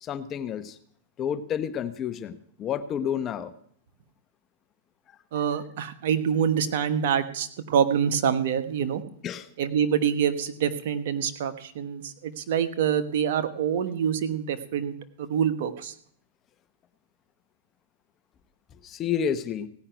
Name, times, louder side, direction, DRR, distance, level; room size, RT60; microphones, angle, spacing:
voice 1, 0.0-0.8 1.2-3.5 9.2-9.5 18.8-19.7, left 8 dB, 30° left, 13 dB, 0.9 m, -30 dB
voice 2, 5.3-9.0 9.6-15.9, right 8 dB, 60° right, 10 dB, 1.2 m, -26 dB
17.0 x 5.7 x 9.1 m, 0.63 s
hypercardioid pair, 125°, 0 cm